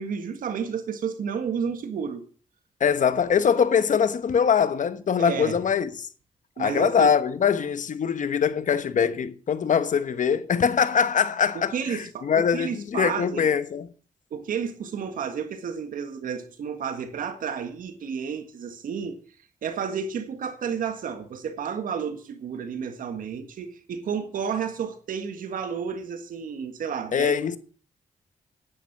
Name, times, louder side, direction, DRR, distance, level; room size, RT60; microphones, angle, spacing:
voice 1, 0.0-2.2 5.2-5.6 6.6-7.1 11.7-13.5 14.3-19.2 19.6-27.6, right 7 dB, 85° right, 1.7 m, -31 dB
voice 2, 2.8-6.1 6.6-13.9 27.1-27.6, left 7 dB, 65° left, 1.1 m, -23 dB
10.5 x 10.0 x 6.1 m
cardioid pair, 60°, 14 cm